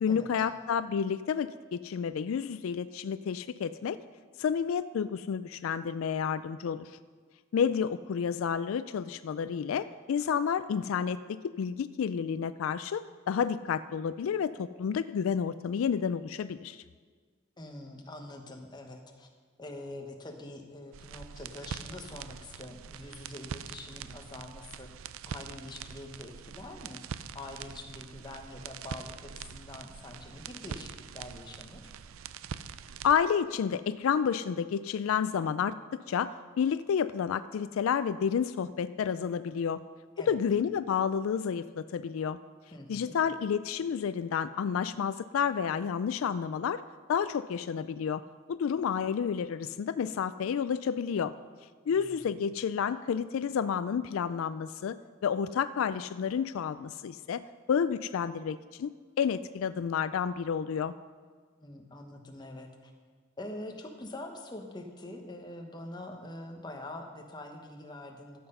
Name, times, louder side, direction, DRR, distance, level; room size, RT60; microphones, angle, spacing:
voice 1, 0.0-4.0 4.4-6.9 7.5-16.8 33.0-35.8 36.1-36.3 36.6-39.8 40.3-42.4 42.9-46.8 47.1-48.2 48.5-51.3 51.9-55.0 55.2-57.4 57.7-58.9 59.2-60.9, left 7 dB, 80° left, 14 dB, 0.3 m, -30 dB
voice 2, 17.6-19.3 19.6-24.9 25.2-27.0 27.3-31.9 40.2-40.4 42.7-43.2 51.9-52.3 61.6-62.9 63.4-68.5, left 1 dB, 20° left, 3 dB, 1.1 m, -44 dB
sound 1, 20.9-33.1, right 7 dB, 80° right, 0.4 m, -44 dB
13.5 x 7.7 x 5.5 m, 1.5 s
head